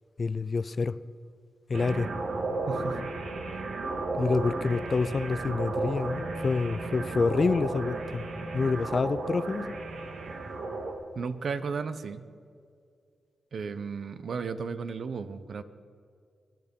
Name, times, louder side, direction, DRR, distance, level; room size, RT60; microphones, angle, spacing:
voice 1, 0.2-1.0 1.7-2.1 4.2-8.3 8.5-9.8, left 4 dB, 45° left, 0.5 m, -27 dB
sound 1, 1.7-10.9, right 3 dB, 80° right, 2.1 m, -34 dB
voice 2, 2.7-3.1 11.2-12.3 13.5-15.6, right 5 dB, 65° right, 0.9 m, -34 dB
23.0 x 10.5 x 5.4 m
cardioid pair, 70°, 0 cm